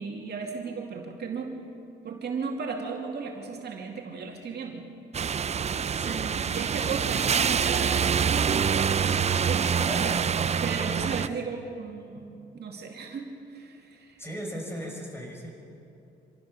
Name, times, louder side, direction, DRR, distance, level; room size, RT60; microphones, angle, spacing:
voice 1, 0.0-1.6 2.0-4.8 6.1-10.2 10.6-12.3 12.5-14.2, right 5 dB, 55° right, 1 dB, 2.6 m, -35 dB
sound 1, 5.1-11.3, right 7 dB, 35° right, 0.5 m, -26 dB
voice 2, 14.2-15.5, equal, 10° left, 0 dB, 6.2 m, -37 dB
26.0 x 15.0 x 6.7 m, 2.6 s
cardioid pair, 90°, 20 cm